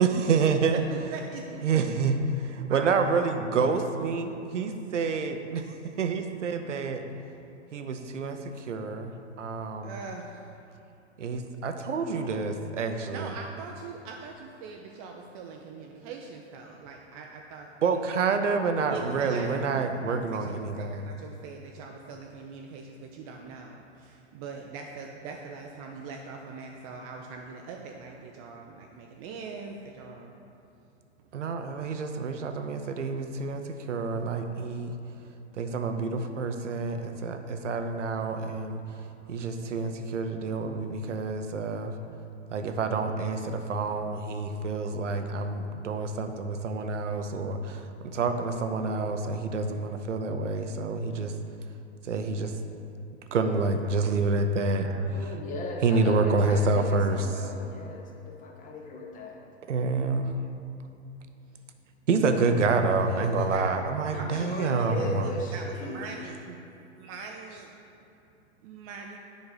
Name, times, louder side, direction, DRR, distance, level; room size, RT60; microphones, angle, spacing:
voice 1, 0.0-0.8 1.6-2.2 2.5-5.6 6.0-7.0 7.7-10.0 11.2-13.3 17.8-21.1 31.3-34.9 35.6-38.8 39.3-41.9 42.5-51.3 52.1-52.5 53.3-54.9 55.2-55.3 55.8-57.5 59.7-60.3 62.1-65.3, right 4 dB, 85° right, 6 dB, 0.7 m, -28 dB
voice 2, 0.7-2.3 2.6-3.2 9.8-10.3 13.1-18.0 18.9-23.8 24.3-30.3 54.8-55.3 63.0-63.9 64.1-66.6 67.0-67.7 68.6-69.2, right 4 dB, 30° right, 1 dB, 0.4 m, -42 dB
voice 3, 55.1-59.4 64.1-66.1, left 2 dB, 20° left, 1 dB, 0.9 m, -38 dB
7.1 x 5.3 x 3.9 m, 2.8 s
hypercardioid pair, 110°, 36 cm